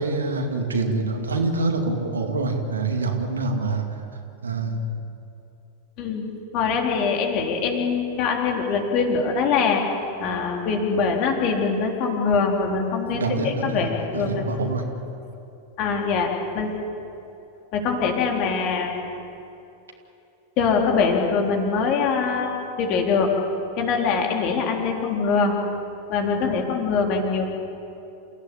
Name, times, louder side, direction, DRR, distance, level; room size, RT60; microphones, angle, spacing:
voice 1, 0.0-3.8 4.4-5.0 13.1-14.8, right 3 dB, 70° right, 3 dB, 2.5 m, -25 dB
voice 2, 6.5-9.8 10.2-14.5 15.8-16.7 17.7-19.0 20.6-22.5 22.8-23.4 23.8-25.6 26.1-27.5, left 5 dB, 40° left, 1 dB, 3.8 m, -23 dB
28.5 x 16.5 x 8.7 m, 2.8 s
figure-of-eight pair, 90°, 0 cm